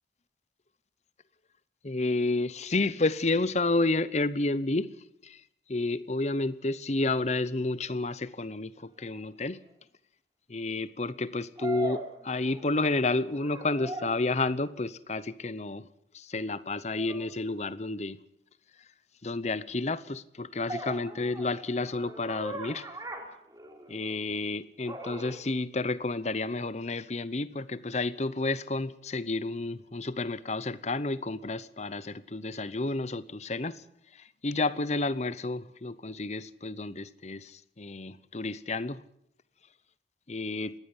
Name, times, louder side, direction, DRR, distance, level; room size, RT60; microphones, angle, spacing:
voice 1, 1.8-4.9 5.2-5.4 5.7-9.6 10.5-15.9 16.1-18.2 19.2-22.9 23.9-33.8 34.4-39.0 40.3-40.7, left 2 dB, 40° left, 0.8 m, -30 dB
sound 1, 9.2-9.3 11.6-12.9 13.2-14.3 17.0-17.3 20.7-24.2 24.8-25.4, right 1 dB, 20° right, 3.7 m, -40 dB
20.0 x 16.0 x 9.7 m
head